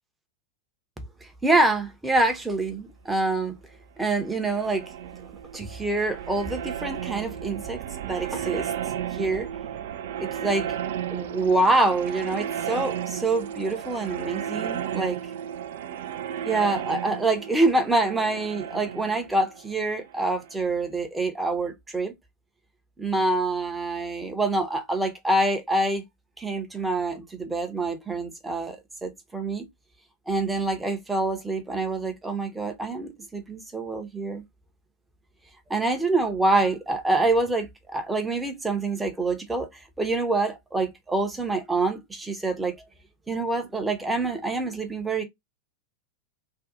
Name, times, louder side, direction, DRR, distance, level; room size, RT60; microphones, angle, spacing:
voice 1, 1.2-3.6 4.0-4.9 5.5-8.7 9.2-9.5 10.2-10.7 11.1-15.2 16.4-22.1 23.0-26.0 26.4-29.7 30.3-34.4 35.7-42.7 43.3-45.2, right 2 dB, 10° right, 0.7 m, -26 dB
sound 1, 4.1-20.8, right 9 dB, 55° right, 0.3 m, -34 dB
2.6 x 2.3 x 3.6 m
figure-of-eight pair, 90°, 0 cm